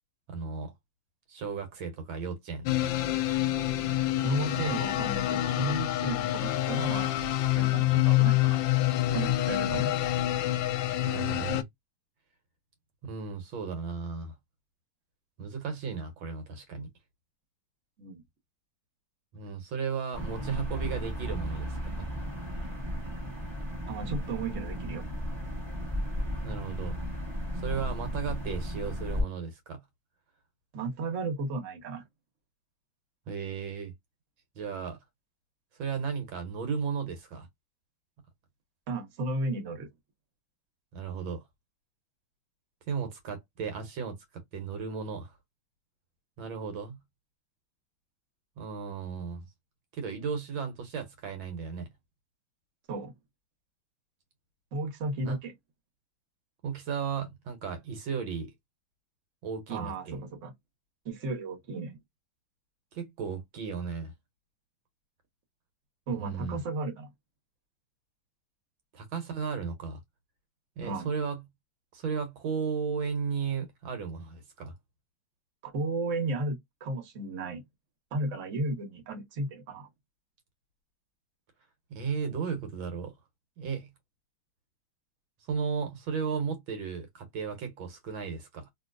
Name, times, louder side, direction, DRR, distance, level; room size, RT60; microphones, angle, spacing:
voice 1, 0.3-0.7 1.3-3.0 9.7-9.8 11.0-11.6 13.0-14.3 15.4-16.9 19.3-22.1 26.4-27.0 27.5-29.8 33.3-33.9 34.6-35.0 35.8-37.5 40.9-41.5 42.9-44.2 44.5-45.3 46.4-47.0 48.6-49.5 49.9-51.9 55.2-55.4 56.6-58.5 59.4-60.2 62.9-64.1 66.1-66.6 68.9-70.0 70.8-71.4 71.9-74.7 81.9-83.1 83.6-83.9 85.5-88.7, right 6 dB, 70° right, 1.6 m, -35 dB
sound 1, 2.7-11.6, left 14 dB, 75° left, 1.2 m, -27 dB
voice 2, 4.2-7.1 7.5-8.6 9.1-9.9 18.0-18.2 23.9-25.0 30.7-32.0 38.9-39.9 52.9-53.1 54.7-55.5 59.7-60.5 61.0-62.0 66.1-67.1 70.8-71.1 75.6-77.6 78.1-79.9, right 2 dB, 45° right, 1.3 m, -34 dB
sound 2, 20.1-29.2, equal, 25° right, 0.7 m, -34 dB
3.0 x 2.9 x 2.4 m
omnidirectional pair, 2.3 m